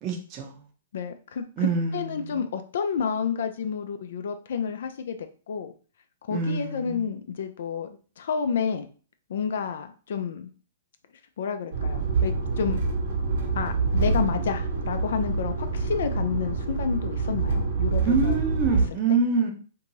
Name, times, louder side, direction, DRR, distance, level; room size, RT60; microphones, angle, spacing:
voice 1, 0.0-0.6 1.6-2.4 6.3-7.0 18.0-19.5, right 4 dB, 35° right, 0 dB, 0.8 m, -26 dB
voice 2, 0.9-5.2 5.5-5.7 6.3-7.9 8.2-8.9 9.3-10.5 11.4-12.8 13.5-18.4, left 6 dB, 65° left, 8 dB, 0.4 m, -30 dB
sound 1, 11.7-18.9, right 4 dB, 70° right, 1.1 m, -26 dB
2.6 x 2.5 x 3.0 m, 0.38 s
hypercardioid pair, 115°, 0 cm